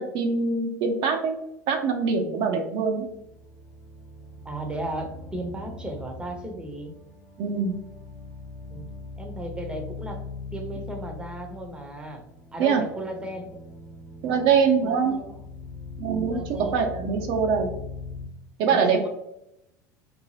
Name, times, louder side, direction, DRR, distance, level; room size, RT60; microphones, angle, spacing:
voice 1, 0.0-1.3 1.7-3.1 7.4-7.8 12.6-12.8 14.2-15.1 16.0-17.7 18.6-19.1, right 5 dB, 55° right, 3 dB, 0.5 m, -23 dB
sound 1, 3.0-18.3, left 3 dB, 45° left, 0.7 m, -41 dB
voice 2, 4.4-6.9 8.7-8.9 9.2-10.2 10.5-12.2 12.5-13.6 14.8-15.4 16.1-16.8 18.7-19.1, right 1 dB, 10° right, 3 dB, 0.7 m, -35 dB
2.6 x 2.2 x 3.1 m, 0.82 s
hypercardioid pair, 80°, 10 cm